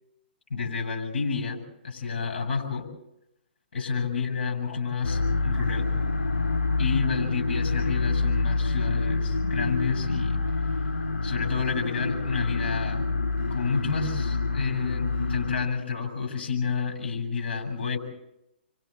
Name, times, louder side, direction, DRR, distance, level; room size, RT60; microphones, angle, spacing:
voice 1, 0.5-2.9 3.7-5.9 6.8-10.4 11.2-13.1 13.5-18.0, left 5 dB, 65° left, 4 dB, 7.7 m, -30 dB
sound 1, 5.0-15.6, left 3 dB, 85° left, 2.0 m, -27 dB
29.0 x 25.0 x 4.2 m, 0.83 s
figure-of-eight pair, 130°, 6 cm